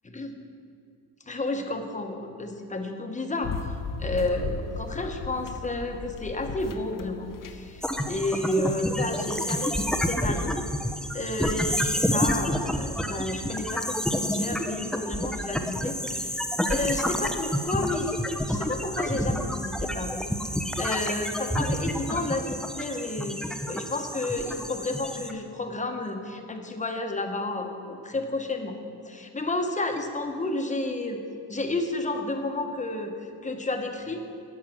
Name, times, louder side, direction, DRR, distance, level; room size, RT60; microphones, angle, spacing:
voice 1, 1.3-3.5 4.0-10.5 11.1-16.4 16.7-18.2 18.5-20.3 20.8-28.8 29.0-31.2 31.5-34.2, left 2 dB, 15° left, 4 dB, 1.1 m, -31 dB
sound 1, 3.4-10.0, left 4 dB, 50° left, 0.8 m, -37 dB
sound 2, 7.8-25.3, equal, ahead, 0.6 m, -29 dB
11.5 x 8.0 x 6.1 m, 2.6 s
cardioid pair, 115°, 41 cm